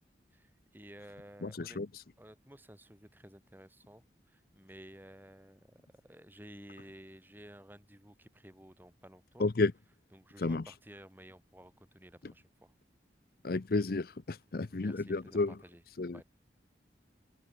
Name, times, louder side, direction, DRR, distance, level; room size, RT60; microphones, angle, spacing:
voice 1, 0.3-1.8 2.2-9.5 10.1-12.7 14.5-15.8 16.1-16.2, equal, 10° right, 6.5 m, -54 dB
voice 2, 1.4-1.9 9.4-9.7 10.4-10.6 13.4-15.5 16.0-16.2, left 3 dB, 55° left, 0.6 m, -31 dB
open air
head